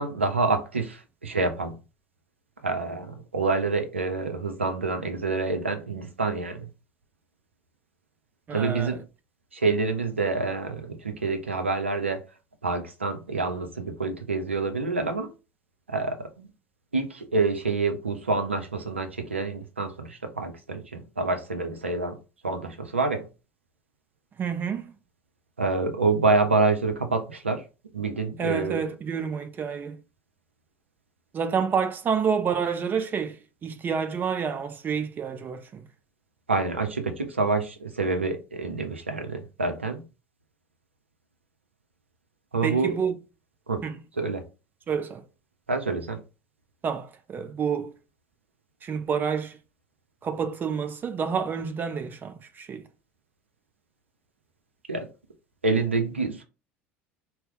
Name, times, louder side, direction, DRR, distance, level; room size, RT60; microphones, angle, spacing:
voice 1, 0.0-1.8 2.6-6.7 8.5-9.0 9.5-12.2 12.6-15.3 15.9-16.5 16.9-22.2 22.4-23.3 25.6-27.6 27.9-28.8 36.5-40.0 42.5-42.9 43.7-43.8 44.2-44.4 45.7-46.2 54.9-55.1 55.6-56.4, right 3 dB, 85° right, 0.5 m, -27 dB
voice 2, 8.5-9.0 24.4-24.9 28.4-30.0 31.3-35.9 42.6-43.2 43.8-44.0 44.9-45.2 46.8-47.9 48.8-49.6 50.2-52.9, right 6 dB, 30° right, 0.5 m, -29 dB
2.8 x 2.0 x 3.6 m
figure-of-eight pair, 65°, 6 cm